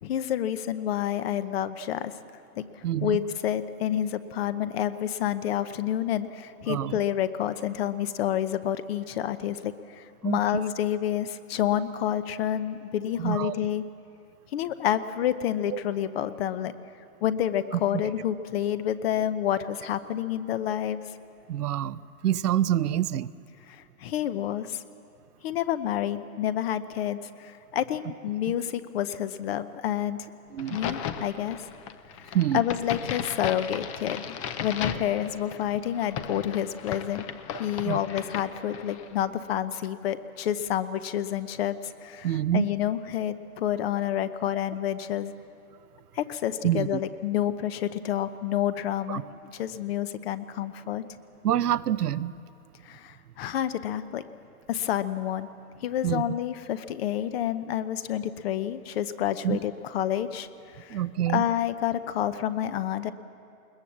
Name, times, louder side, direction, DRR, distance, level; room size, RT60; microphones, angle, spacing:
voice 1, 0.0-2.1 2.6-2.7 3.0-13.8 14.5-16.7 17.2-21.0 23.7-24.8 25.4-30.3 30.7-31.7 32.2-37.3 37.6-45.3 46.1-51.0 52.8-54.2 54.7-55.5 55.8-61.0 61.3-63.1, left 11 dB, 40° left, 13 dB, 0.9 m, -29 dB
voice 2, 2.8-3.2 6.7-7.0 10.2-10.4 13.2-13.5 15.7-15.8 21.5-23.3 28.5-28.6 30.5-30.8 32.3-32.6 37.8-38.0 42.2-42.7 46.6-47.0 49.1-49.2 51.4-52.4 56.0-56.2 59.4-59.6 60.9-61.4, right 11 dB, 85° right, 15 dB, 0.7 m, -26 dB
Crack, 30.6-39.1, left 8 dB, 25° left, 0.5 m, -36 dB
21.5 x 19.5 x 7.4 m, 2.6 s
hypercardioid pair, 140°, 45 cm